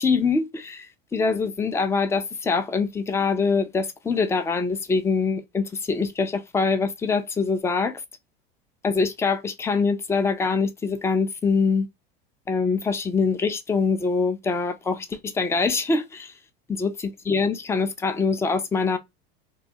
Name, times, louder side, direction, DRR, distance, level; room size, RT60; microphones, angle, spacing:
voice 1, 0.0-8.0 8.8-11.9 12.5-16.3 16.7-19.0, left 4 dB, 10° left, 0.3 m, -24 dB
2.3 x 2.3 x 2.6 m
hypercardioid pair, 90°, 31 cm